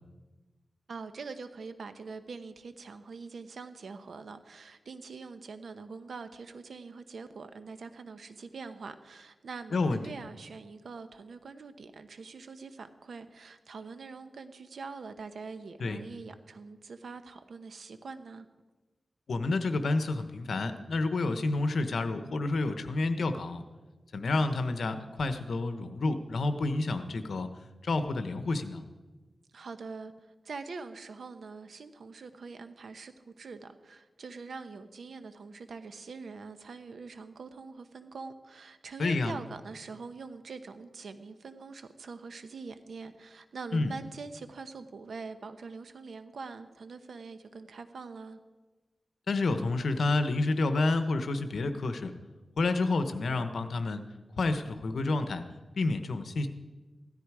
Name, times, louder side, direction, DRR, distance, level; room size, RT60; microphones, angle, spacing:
voice 1, 0.9-18.5 29.5-48.4, right 4 dB, 85° right, 9 dB, 1.0 m, -44 dB
voice 2, 19.3-23.6 24.1-27.5 27.8-28.8 39.0-39.3 43.7-43.9 49.3-52.1 52.6-54.1 54.4-55.4 55.8-56.5, left 3 dB, 80° left, 9 dB, 1.0 m, -29 dB
16.5 x 13.0 x 4.9 m, 1.2 s
wide cardioid pair, 80°, 0 cm